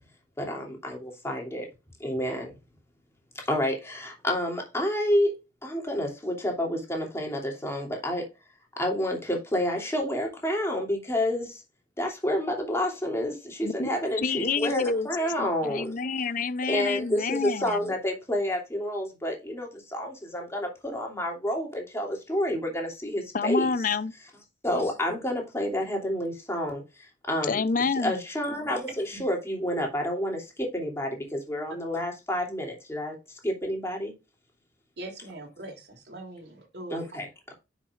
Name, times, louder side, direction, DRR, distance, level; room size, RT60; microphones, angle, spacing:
voice 1, 0.4-1.7 2.0-2.5 3.3-8.3 8.8-11.6 12.0-16.0 16.7-23.7 24.6-27.6 28.0-34.1 36.9-37.5, left 1 dB, 15° left, 3.0 m, -29 dB
voice 2, 14.2-15.1 15.4-17.8 23.3-24.1 27.5-28.2, left 4 dB, 50° left, 0.6 m, -28 dB
voice 3, 35.0-37.0, right 1 dB, 65° right, 3.2 m, -41 dB
10.0 x 6.1 x 2.5 m
head